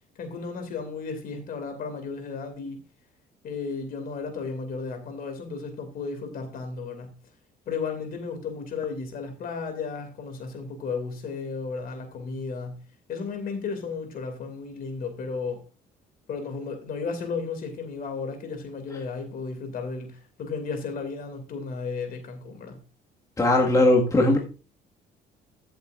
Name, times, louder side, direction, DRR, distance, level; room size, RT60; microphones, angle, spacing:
voice 1, 0.2-2.8 3.4-7.1 7.7-12.8 13.1-15.6 16.3-22.8, left 4 dB, 60° left, 2.6 m, -34 dB
voice 2, 23.4-24.4, left 2 dB, 20° left, 1.8 m, -19 dB
14.0 x 7.8 x 2.6 m
cardioid pair, 110°, 17 cm